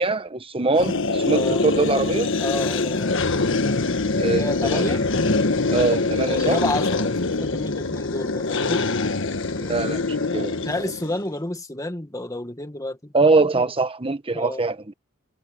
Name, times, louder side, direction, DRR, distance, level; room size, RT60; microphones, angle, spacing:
voice 1, 0.0-2.3 4.2-5.0 5.7-6.6 9.6-10.6 13.1-14.9, right 3 dB, 25° right, 1.3 m, -23 dB
sound 1, 0.8-11.2, left 3 dB, 65° left, 1.5 m, -24 dB
voice 2, 1.3-1.7 2.4-3.3 4.4-5.0 6.3-8.9 10.6-13.7 14.3-14.6, left 2 dB, 15° left, 1.9 m, -30 dB
head